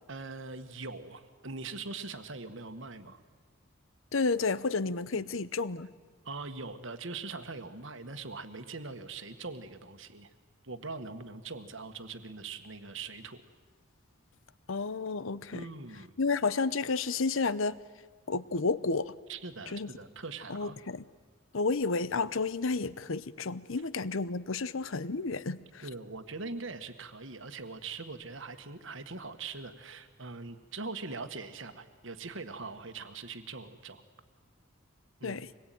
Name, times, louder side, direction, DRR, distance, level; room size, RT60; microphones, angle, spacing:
voice 1, 0.1-3.2 5.1-5.2 6.2-10.3 10.6-13.4 15.5-16.1 19.3-20.8 25.8-34.0 35.2-35.4, right 3 dB, 65° right, 9 dB, 1.6 m, -42 dB
voice 2, 4.1-5.9 14.7-15.7 16.2-17.8 18.3-19.1 19.7-19.9 20.5-21.0 21.5-25.9 35.2-35.5, left 4 dB, 70° left, 17 dB, 0.8 m, -31 dB
25.5 x 21.0 x 9.3 m, 1.4 s
head